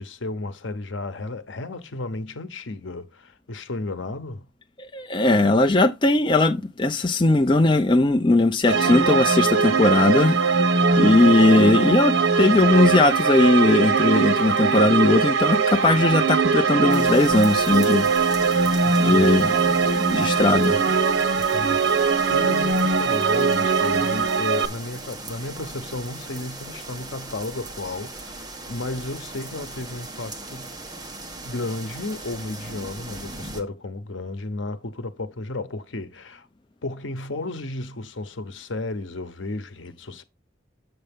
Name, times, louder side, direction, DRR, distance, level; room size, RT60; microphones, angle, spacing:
voice 1, 0.0-4.5 18.8-19.4 21.4-30.7 31.4-36.5 36.8-40.2, left 2 dB, 85° left, 0.9 m, -33 dB
voice 2, 4.8-10.4 11.0-18.1 19.0-19.6 19.9-20.8, left 2 dB, 25° left, 0.5 m, -19 dB
sound 1, 8.7-24.7, right 5 dB, 85° right, 0.9 m, -21 dB
sound 2, 16.9-33.6, right 2 dB, 20° right, 1.1 m, -38 dB
7.7 x 6.8 x 3.5 m
head